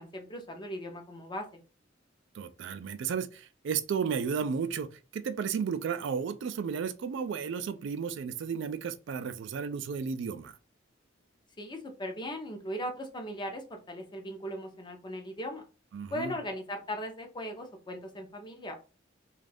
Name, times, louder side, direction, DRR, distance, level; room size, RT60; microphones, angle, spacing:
voice 1, 0.0-1.6 11.6-15.6 16.1-18.7, equal, 25° left, 0.6 m, -38 dB
voice 2, 2.3-10.6 15.9-16.4, right 6 dB, 65° right, 0.3 m, -33 dB
2.5 x 2.3 x 3.3 m
head